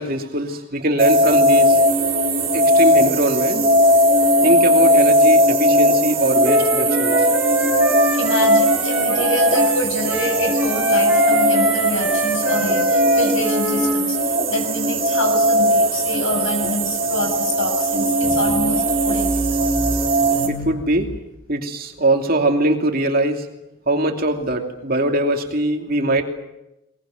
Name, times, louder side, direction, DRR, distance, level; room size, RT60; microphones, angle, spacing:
voice 1, 0.0-1.8 2.5-3.6 4.4-7.3 20.5-21.1 21.5-23.5 23.9-26.2, right 1 dB, 45° right, 4 dB, 2.8 m, -21 dB
sound 1, 1.0-20.5, equal, 30° right, 3.3 m, -18 dB
Wind instrument woodwind instrument, 6.4-14.0, right 1 dB, 5° right, 6.6 m, -26 dB
voice 2, 8.1-20.7, left 1 dB, 65° left, 5 dB, 7.3 m, -27 dB
22.5 x 22.0 x 9.1 m, 0.92 s
head